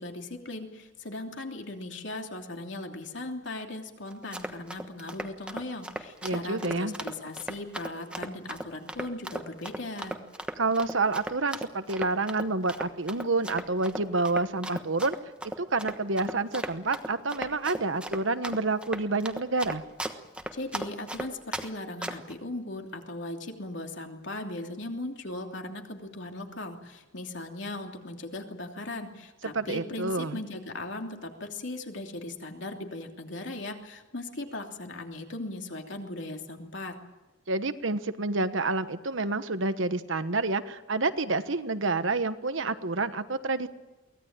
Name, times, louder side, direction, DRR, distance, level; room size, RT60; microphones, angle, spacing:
voice 1, 0.0-10.2 20.5-36.9, left 2 dB, 65° left, 3 dB, 3.0 m, -38 dB
Run, 4.1-21.7 22.0-22.3, right 1 dB, 5° right, 1.2 m, -37 dB
voice 2, 6.2-6.9 10.6-15.1 15.6-19.8 29.5-30.4 37.5-43.7, right 3 dB, 75° right, 11 dB, 1.2 m, -28 dB
23.5 x 18.0 x 9.0 m, 1.1 s
head